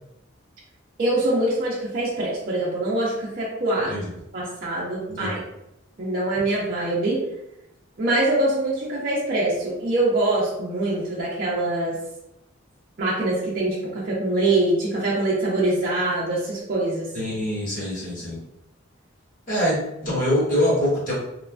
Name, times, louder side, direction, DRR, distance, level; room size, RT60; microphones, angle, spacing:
voice 1, 1.0-3.9 4.3-5.3 6.0-7.2 8.0-11.9 13.0-17.1, right 2 dB, 45° right, -7 dB, 0.6 m, -24 dB
voice 2, 5.1-5.4 17.1-18.4 19.5-21.1, left 1 dB, 45° left, -7 dB, 1.2 m, -24 dB
3.0 x 2.2 x 2.4 m, 0.84 s
head